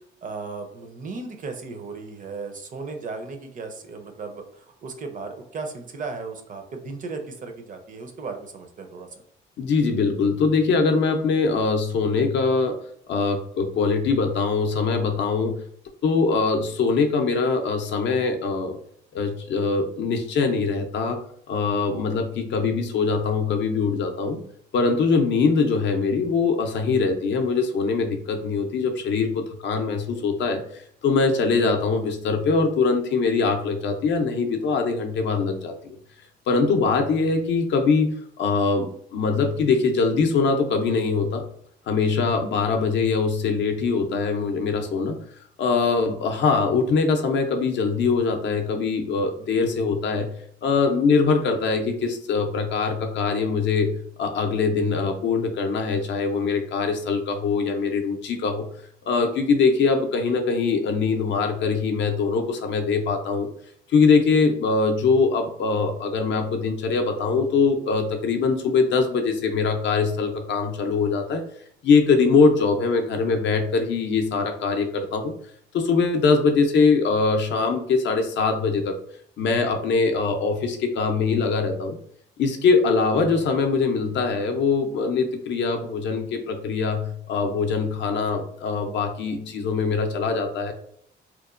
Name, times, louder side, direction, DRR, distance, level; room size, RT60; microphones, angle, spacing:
voice 1, 0.2-9.1, right 4 dB, 40° right, 6 dB, 0.5 m, -36 dB
voice 2, 9.6-12.8 13.1-15.6 16.0-18.8 19.1-21.2 21.5-24.4 24.7-36.0 36.5-41.4 41.9-45.2 45.6-50.3 50.6-58.7 59.1-63.5 63.9-71.4 71.8-75.3 75.7-78.9 79.4-82.0 82.4-90.7, left 4 dB, 65° left, 5 dB, 0.5 m, -22 dB
2.9 x 2.1 x 2.4 m, 0.67 s
cardioid pair, 90°, 20 cm